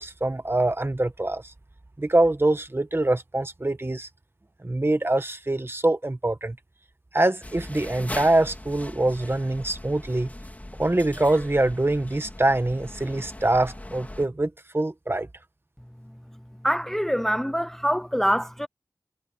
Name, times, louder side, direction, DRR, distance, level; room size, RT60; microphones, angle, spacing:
voice 1, 0.0-1.5 2.0-4.1 4.6-6.6 7.1-10.3 10.8-15.3, right 2 dB, 35° right, 1.6 m, -24 dB
sound 1, 7.4-14.3, left 1 dB, 20° left, 3.7 m, -40 dB
voice 2, 16.6-18.7, equal, 5° left, 0.7 m, -24 dB
wide cardioid pair, 50°, 7 cm